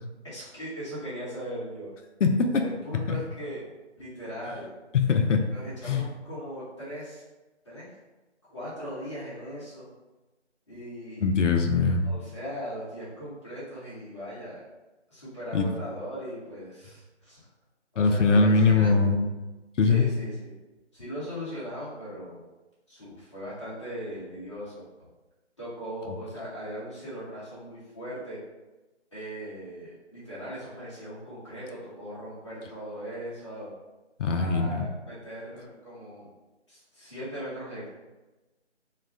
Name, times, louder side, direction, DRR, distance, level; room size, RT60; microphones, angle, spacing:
voice 1, 0.2-1.9 2.6-3.6 4.0-4.7 5.5-7.2 7.6-8.0 8.5-9.9 10.7-11.2 12.0-14.6 15.1-17.4 17.9-18.9 19.8-20.6 20.9-22.4 22.9-24.9 25.6-28.4 29.1-33.7 34.3-36.3 36.7-37.9, equal, 25° left, -10 dB, 0.8 m, -39 dB
voice 2, 2.2-2.6 3.1-3.2 4.9-5.5 5.9-6.0 11.2-12.0 15.5-15.6 18.0-19.3 19.8-20.1 34.2-34.8, left 4 dB, 85° left, 5 dB, 0.5 m, -22 dB
2.3 x 2.1 x 3.4 m, 1.1 s
figure-of-eight pair, 165°, 36 cm